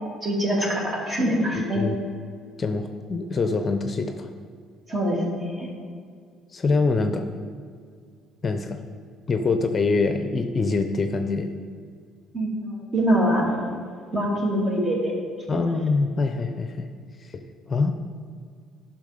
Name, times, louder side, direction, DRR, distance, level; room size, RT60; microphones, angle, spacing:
voice 1, 0.0-1.8 4.9-5.7 12.3-13.6 14.1-15.1 15.5-15.6, equal, 30° right, -2 dB, 2.6 m, -24 dB
voice 2, 1.5-2.0 2.6-4.3 6.5-7.3 8.4-8.8 9.3-11.5 15.5-16.9 17.3-17.9, left 3 dB, 35° left, 7 dB, 0.6 m, -24 dB
10.5 x 6.0 x 5.0 m, 2.1 s
supercardioid pair, 85°, 0 cm